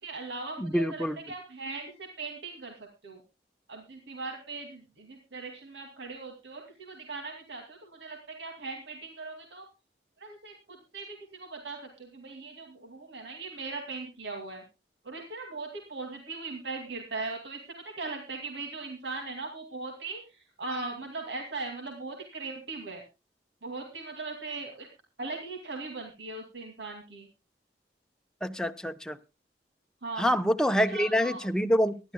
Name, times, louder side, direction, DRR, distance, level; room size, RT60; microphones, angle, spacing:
voice 1, 0.0-3.2 3.7-9.7 10.2-14.6 15.0-23.0 23.6-24.9 25.2-27.3 30.0-30.3 30.8-31.5, right 3 dB, 90° right, 2 dB, 2.4 m, -39 dB
voice 2, 0.6-1.2 28.4-29.2 30.2-32.1, equal, 5° left, 7 dB, 0.8 m, -26 dB
23.5 x 11.5 x 2.2 m, 0.28 s
head